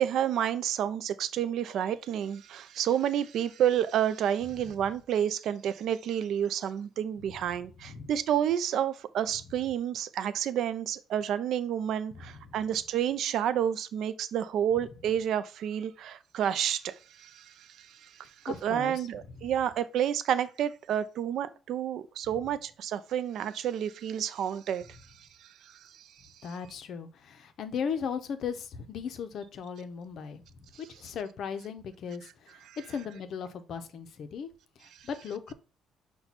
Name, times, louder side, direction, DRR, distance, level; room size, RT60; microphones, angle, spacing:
voice 1, 0.0-25.0 25.4-25.8 32.7-32.8, right 10 dB, 60° right, 0.4 m, -30 dB
voice 2, 12.2-12.5 18.5-19.0 19.4-19.5 26.4-30.4 31.0-34.5 34.8-35.5, left 6 dB, 55° left, 0.5 m, -37 dB
5.8 x 2.2 x 4.1 m
cardioid pair, 145°, 0 cm